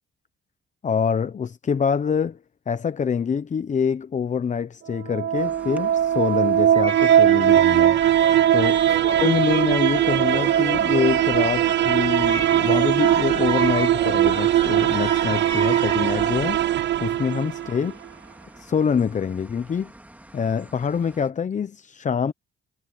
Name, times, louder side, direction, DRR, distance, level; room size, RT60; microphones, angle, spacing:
voice 1, 0.8-2.4 2.7-8.0 8.5-16.6 17.0-18.0 18.6-19.9 20.3-22.3, left 6 dB, 40° left, 0.9 m, -25 dB
sound 1, 4.9-17.9, right 11 dB, 65° right, 0.8 m, -20 dB
river and birds, 5.3-21.3, right 1 dB, 10° right, 2.8 m, -48 dB
reloj campesinos, 6.7-16.3, right 5 dB, 35° right, 4.7 m, -32 dB
cardioid pair, 90°, 20 cm